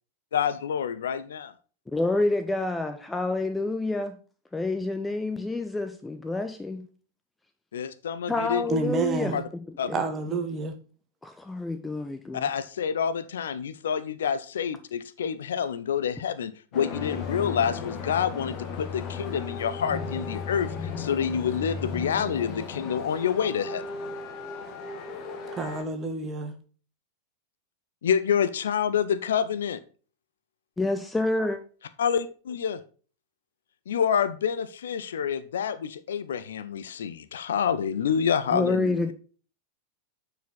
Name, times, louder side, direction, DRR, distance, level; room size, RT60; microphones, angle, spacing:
voice 1, 0.3-1.5 7.7-8.6 9.3-9.4 9.8-9.9 12.3-23.8 28.0-29.8 32.0-32.8 33.9-39.0, left 7 dB, 65° left, 0.5 m, -27 dB
voice 2, 1.9-4.2 4.5-6.9 8.3-9.3 9.9-10.0 10.3-10.4 11.2-12.4 30.8-31.6 38.5-39.1, left 2 dB, 10° left, 0.6 m, -28 dB
voice 3, 8.7-9.4 9.9-10.7 25.6-26.5, right 3 dB, 25° right, 1.3 m, -29 dB
sound 1, 16.7-25.8, left 5 dB, 35° left, 1.5 m, -35 dB
9.2 x 4.9 x 4.1 m
figure-of-eight pair, 90°, 0 cm